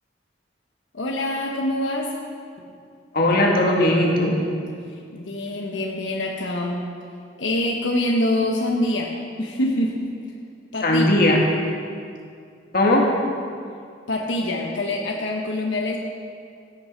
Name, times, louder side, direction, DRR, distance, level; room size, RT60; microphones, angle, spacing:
voice 1, 0.9-2.1 5.1-6.9 7.4-10.2 10.7-11.1 14.1-16.0, left 1 dB, 90° left, 0 dB, 1.1 m, -25 dB
voice 2, 3.1-4.4 10.8-11.4 12.7-13.1, left 1 dB, 55° left, -1 dB, 1.9 m, -18 dB
16.0 x 8.7 x 4.5 m, 2.3 s
head